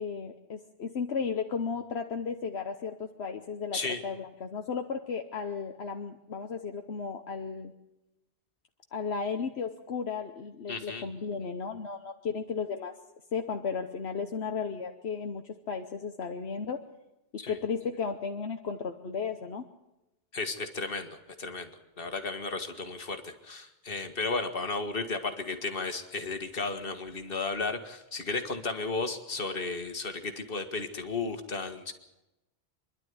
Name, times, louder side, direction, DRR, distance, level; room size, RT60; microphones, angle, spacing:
voice 1, 0.0-7.7 8.9-12.9 13.3-16.8 17.5-19.6, left 5 dB, 75° left, 5 dB, 1.3 m, -34 dB
voice 2, 10.7-11.0 17.4-17.6 20.3-31.9, left 3 dB, 60° left, 7 dB, 1.9 m, -34 dB
25.0 x 11.5 x 9.5 m, 0.96 s
omnidirectional pair, 1.1 m